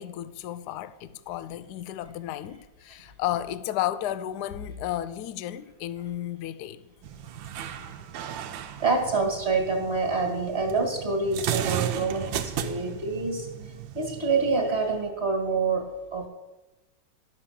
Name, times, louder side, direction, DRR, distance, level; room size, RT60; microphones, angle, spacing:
voice 1, 0.0-6.8, left 12 dB, 70° left, 1.0 m, -33 dB
sound 1, 7.0-15.1, right 10 dB, 75° right, 1.4 m, -35 dB
voice 2, 8.8-13.5 13.9-15.8 16.1-16.3, right 4 dB, 30° right, 2.0 m, -26 dB
11.5 x 6.7 x 7.3 m
omnidirectional pair, 2.2 m